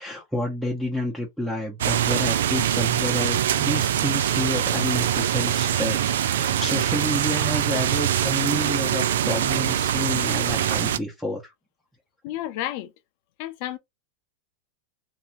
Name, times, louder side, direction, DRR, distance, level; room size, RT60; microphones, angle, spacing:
voice 1, 0.0-11.5, left 1 dB, ahead, 0.9 m, -29 dB
sound 1, 1.8-11.0, right 10 dB, 80° right, 0.3 m, -23 dB
voice 2, 12.2-12.9 13.4-13.8, left 14 dB, 60° left, 0.6 m, -31 dB
2.8 x 2.7 x 2.5 m
hypercardioid pair, 110°, 0 cm